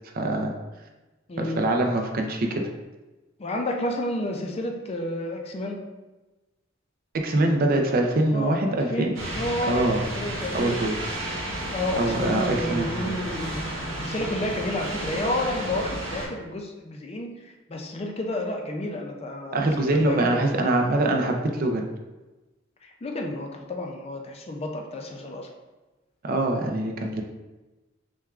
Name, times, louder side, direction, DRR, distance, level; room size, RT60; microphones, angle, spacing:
voice 1, 0.1-0.5 1.4-2.6 7.1-9.2 9.7-10.0 10.5-11.1 12.0-13.0 19.5-21.8 26.2-27.2, right 2 dB, 45° right, 3 dB, 0.4 m, -24 dB
voice 2, 1.3-1.7 3.4-5.8 8.3-10.8 11.7-17.3 17.7-20.7 22.8-25.5, left 1 dB, 30° left, 2 dB, 0.4 m, -31 dB
sound 1, 9.1-16.3, right 1 dB, 90° right, 1.0 m, -32 dB
6.0 x 2.3 x 2.4 m, 1.1 s
head